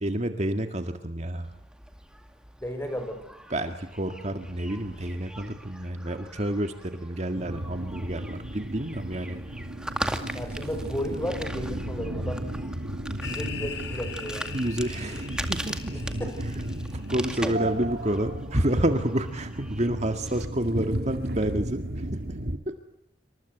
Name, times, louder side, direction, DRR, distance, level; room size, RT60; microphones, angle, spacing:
voice 1, 0.0-1.5 3.5-9.4 14.5-16.3 16.8-22.2 22.7-22.8, right 1 dB, 40° right, 6 dB, 2.0 m, -29 dB
sound 1, 1.4-20.4, right 1 dB, 5° right, 2.2 m, -41 dB
voice 2, 2.6-3.2 10.3-14.6 15.9-16.4 17.4-17.8, equal, 15° left, 7 dB, 5.5 m, -34 dB
sound 2, 7.3-22.6, right 1 dB, 60° right, 2.0 m, -35 dB
sound 3, 13.2-17.1, left 6 dB, 65° left, 3.0 m, -41 dB
28.0 x 26.0 x 8.1 m, 0.75 s
head